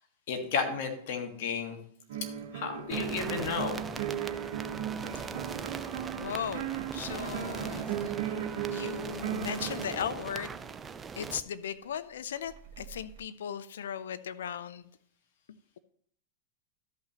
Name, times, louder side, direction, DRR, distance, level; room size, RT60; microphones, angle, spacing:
voice 1, 0.3-1.8 2.5-3.8, left 5 dB, 65° left, 5 dB, 1.5 m, -32 dB
sound 1, 2.1-11.1 12.4-13.2, right 9 dB, 70° right, 1.0 m, -37 dB
sound 2, 2.9-11.4, right 5 dB, 20° right, 0.4 m, -41 dB
voice 2, 6.2-7.9 8.7-10.5 11.2-14.9, left 8 dB, 80° left, 16 dB, 0.4 m, -37 dB
12.5 x 5.7 x 2.9 m, 0.64 s
hypercardioid pair, 115°, 0 cm